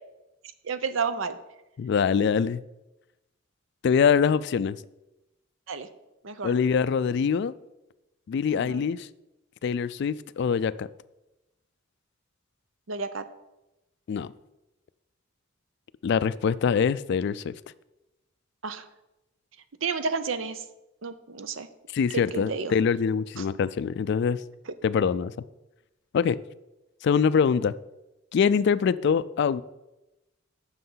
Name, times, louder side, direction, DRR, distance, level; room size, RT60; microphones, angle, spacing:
voice 1, 0.6-1.4 5.7-5.9 6.2-6.6 8.5-8.9 12.9-13.2 18.6-18.8 19.8-20.6 21.0-21.7 22.1-22.7 23.4-23.5, right 5 dB, 70° right, 0.7 m, -31 dB
voice 2, 1.8-2.6 3.8-4.8 6.4-7.5 8.3-9.1 9.6-10.9 14.1-14.3 16.0-17.5 21.9-24.4 24.8-25.3 26.1-26.4 27.0-27.7 28.3-29.6, left 6 dB, 55° left, 0.3 m, -24 dB
7.9 x 6.4 x 5.6 m
head